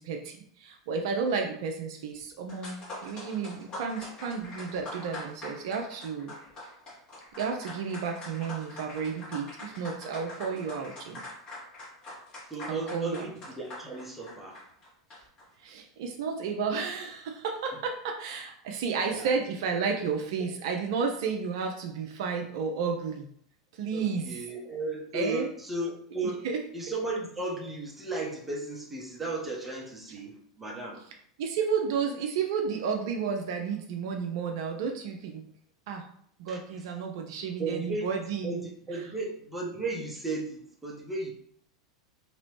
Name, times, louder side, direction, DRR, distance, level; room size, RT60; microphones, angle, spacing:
voice 1, 0.0-6.3 7.4-11.2 12.7-13.2 15.6-23.3 23.7-24.4 25.1-25.5 26.2-26.6 31.4-35.4 35.9-36.1 36.4-38.6 39.0-39.1, right 5 dB, 60° right, 3 dB, 0.5 m, -32 dB
sound 1, 2.2-2.3 2.5-15.5, left 1 dB, 30° left, 1.5 m, -44 dB
voice 2, 12.5-14.6 19.1-19.3 20.4-20.5 23.9-26.5 26.7-31.0 36.5-36.6 37.6-38.1 38.4-41.3, right 2 dB, 10° right, -2 dB, 1.0 m, -35 dB
3.0 x 2.9 x 3.1 m, 0.64 s
figure-of-eight pair, 90°, 3 cm